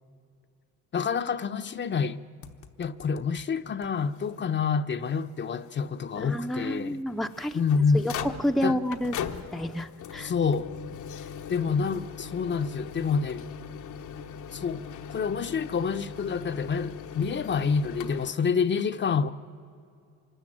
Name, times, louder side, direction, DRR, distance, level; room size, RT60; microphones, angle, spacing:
voice 1, 0.9-2.2 2.8-7.0 7.5-8.1 8.6-8.8 10.2-10.7 11.5-13.5 14.5-14.8 15.1-19.3, left 5 dB, 40° left, 0.7 m, -27 dB
sound 1, 2.4-3.4 3.8-3.9 4.2-4.3 4.9-5.0 7.1-18.3, left 7 dB, 80° left, 1.1 m, -40 dB
voice 2, 6.2-7.6 7.9-10.3, equal, ahead, 0.6 m, -30 dB
24.5 x 13.5 x 8.8 m
cardioid pair, 90°, 30 cm